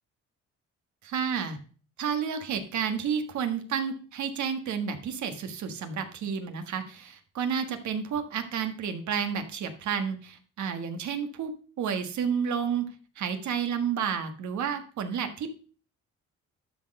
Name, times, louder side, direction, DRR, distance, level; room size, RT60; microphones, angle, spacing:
voice 1, 1.0-1.6 2.0-11.5 11.8-15.6, right 7 dB, 70° right, 8 dB, 1.5 m, -31 dB
12.0 x 4.2 x 6.5 m, 0.42 s
cardioid pair, 90°, 30 cm